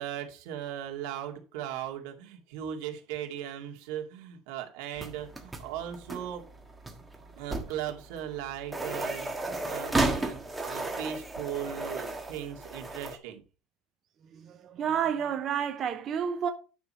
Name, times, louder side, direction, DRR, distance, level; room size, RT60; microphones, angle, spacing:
voice 1, 0.0-6.4 7.4-13.4, right 10 dB, 85° right, 2.3 m, -38 dB
sound 1, 5.0-13.2, right 2 dB, 10° right, 1.4 m, -34 dB
voice 2, 14.3-16.5, right 8 dB, 35° right, 0.7 m, -30 dB
9.6 x 6.0 x 4.4 m
cardioid pair, 155°, 0 cm